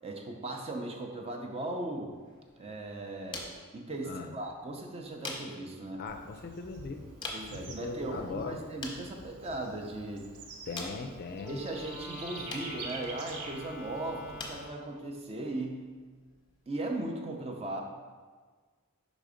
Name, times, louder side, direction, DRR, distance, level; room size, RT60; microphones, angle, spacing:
voice 1, 0.0-2.1 2.6-3.5 3.7-6.0 7.3-10.3 11.5-15.9 16.7-17.8, right 2 dB, 25° right, 2 dB, 0.6 m, -38 dB
sound 1, 2.1-17.1, left 2 dB, 20° left, 0.8 m, -48 dB
voice 2, 4.0-4.3 6.0-7.1 7.5-8.6 10.7-11.6, left 4 dB, 45° left, 6 dB, 0.4 m, -39 dB
Bird / Insect, 6.1-14.6, right 3 dB, 85° right, 0.7 m, -47 dB
Wind instrument woodwind instrument, 11.4-14.9, equal, 10° right, 1.0 m, -46 dB
5.0 x 3.8 x 5.0 m, 1.5 s
head